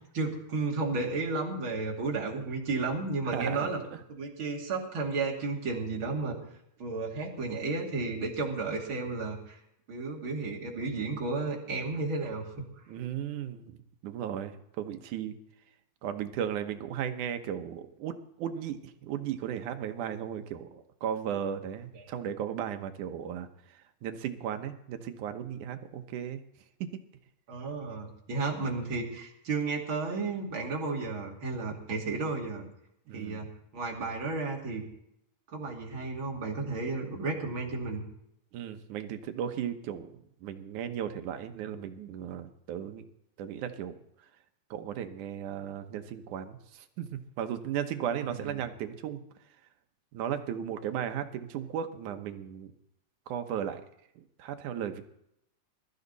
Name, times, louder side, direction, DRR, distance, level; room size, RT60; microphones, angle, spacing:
voice 1, 0.1-3.8 4.1-6.4 6.8-9.6 9.9-12.5 21.9-22.0 27.5-32.7 33.1-33.5 33.7-34.8 35.5-38.0 48.2-48.6, right 3 dB, 45° right, -1 dB, 3.3 m, -33 dB
voice 2, 3.3-4.0 12.9-13.8 14.0-15.4 16.0-26.4 26.8-27.0 33.1-33.5 38.5-43.1 43.4-44.0 44.7-49.2 50.1-52.7 53.3-53.8 54.2-55.0, right 9 dB, 90° right, 8 dB, 2.6 m, -36 dB
21.0 x 13.0 x 4.1 m, 0.77 s
omnidirectional pair, 3.4 m